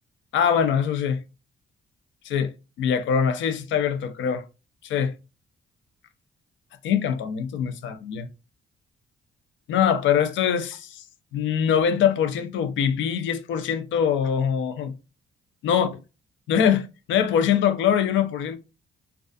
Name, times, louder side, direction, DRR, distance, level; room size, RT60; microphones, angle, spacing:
voice 1, 0.3-1.2 2.2-2.5 2.8-4.4 4.8-5.1 6.8-8.3 9.7-11.0 11.3-14.9 15.6-15.9 16.5-18.6, left 8 dB, 75° left, 0.4 m, -23 dB
2.3 x 2.3 x 2.5 m
cardioid pair, 90°, 20 cm